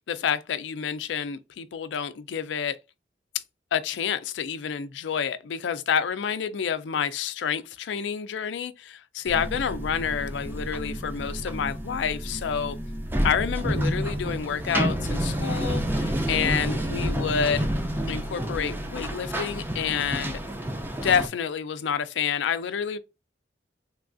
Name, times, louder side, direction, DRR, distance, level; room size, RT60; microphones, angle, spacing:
voice 1, 0.1-2.8 3.7-12.8 13.2-17.7 18.1-20.4 21.0-23.0, left 7 dB, 90° left, 0.4 m, -28 dB
sound 1, 9.3-21.3, right 1 dB, 10° right, 0.4 m, -29 dB
3.3 x 2.3 x 2.4 m
head